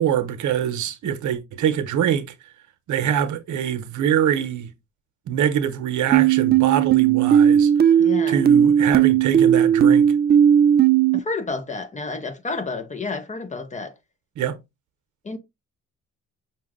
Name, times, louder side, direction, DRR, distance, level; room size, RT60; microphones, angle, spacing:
voice 1, 0.0-2.2 2.9-4.7 5.3-7.7 8.3-10.1 14.4-14.6, right 9 dB, 75° right, 0.9 m, -24 dB
sound 1, 6.1-11.2, right 9 dB, 35° right, 0.4 m, -16 dB
voice 2, 8.0-8.4 11.1-13.9 15.2-15.4, left 3 dB, 25° left, 0.8 m, -30 dB
5.9 x 2.4 x 3.6 m
cardioid pair, 90°, 30 cm